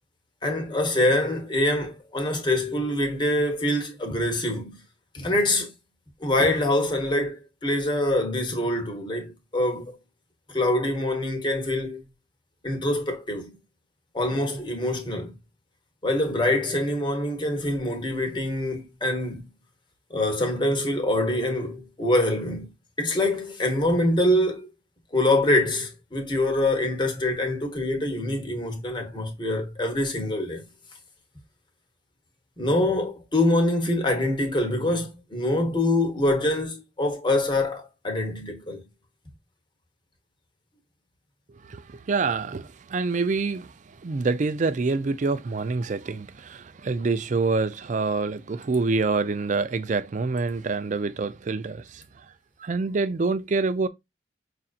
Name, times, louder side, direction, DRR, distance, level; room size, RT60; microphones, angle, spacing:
voice 1, 0.4-4.8 5.1-5.7 6.2-9.9 10.5-12.0 12.6-13.5 14.1-15.3 16.0-19.4 20.1-22.7 23.0-24.7 25.1-30.6 32.6-38.8, left 1 dB, 25° left, 1.1 m, -25 dB
voice 2, 41.6-52.3 52.6-53.9, right 4 dB, 40° right, 0.4 m, -26 dB
5.6 x 2.5 x 2.4 m
head